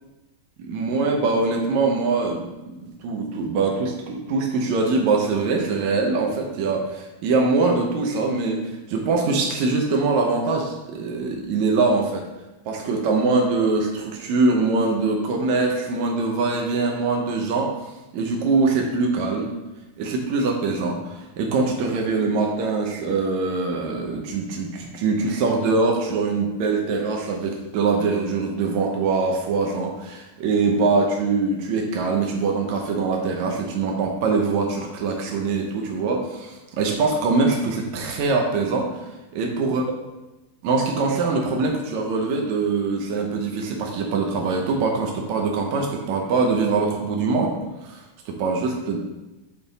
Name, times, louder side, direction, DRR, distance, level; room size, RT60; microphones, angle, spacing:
voice 1, 0.6-8.6 8.9-12.2 12.7-17.7 18.1-19.5 20.0-38.9 39.3-39.8 40.6-47.6 47.8-49.0, right 3 dB, 85° right, 1 dB, 1.6 m, -23 dB
10.0 x 3.6 x 4.0 m, 1.0 s
omnidirectional pair, 4.4 m